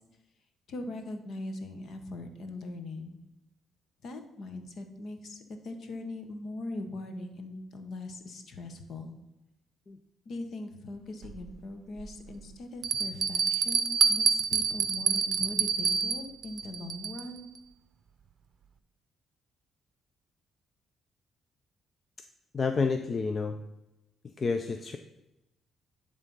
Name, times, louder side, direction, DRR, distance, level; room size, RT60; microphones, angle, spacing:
voice 1, 0.7-3.2 4.0-9.1 10.2-17.5, left 2 dB, 60° left, 7 dB, 1.3 m, -40 dB
Bell, 11.2-11.3 12.0-12.1 12.8-17.4, right 6 dB, 55° right, 0.6 m, -27 dB
voice 2, 22.5-23.6 24.4-25.0, left 4 dB, 40° left, 7 dB, 0.5 m, -29 dB
11.0 x 3.7 x 5.4 m, 0.94 s
cardioid pair, 90°, 0 cm